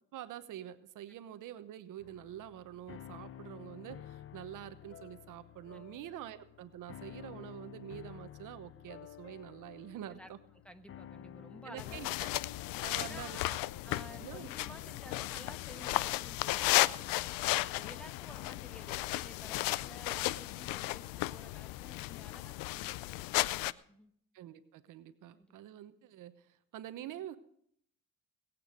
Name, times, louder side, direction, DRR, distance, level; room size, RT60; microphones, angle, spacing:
voice 1, 0.1-10.4 11.6-12.1 12.8-13.4 14.2-14.5 24.3-26.5 26.7-27.4, right 12 dB, 65° right, 12 dB, 1.0 m, -46 dB
sound 1, 2.0-18.2, left 10 dB, 40° left, 0.6 m, -52 dB
voice 2, 10.0-10.3 10.6-12.4 13.0-13.5 13.8-17.3 17.7-24.1 25.4-25.6, equal, 5° left, 6 dB, 1.1 m, -53 dB
sound 2, 11.8-23.7, left 19 dB, 90° left, 0.5 m, -34 dB
19.5 x 8.6 x 5.2 m, 0.67 s
cardioid pair, 90°, 33 cm